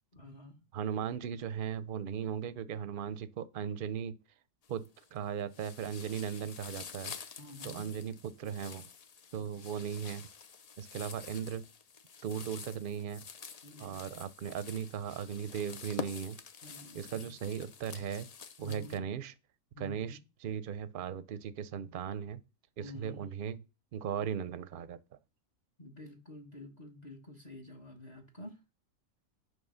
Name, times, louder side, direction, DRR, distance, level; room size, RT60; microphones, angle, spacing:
voice 1, 0.1-0.6 7.4-7.9 13.6-14.0 16.6-17.3 18.6-19.0 19.7-20.2 22.8-23.3 25.8-28.6, left 2 dB, 30° left, 1.3 m, -49 dB
voice 2, 0.7-4.2 4.7-7.1 7.6-8.9 9.3-10.2 10.8-11.6 12.2-13.2 13.8-16.4 16.9-18.3 18.6-19.3 19.8-22.4 22.8-23.6 23.9-25.0, right 8 dB, 55° right, 0.7 m, -37 dB
sound 1, 4.6-5.2 5.5-19.0, left 6 dB, 65° left, 0.4 m, -48 dB
9.0 x 3.2 x 5.6 m
omnidirectional pair, 1.4 m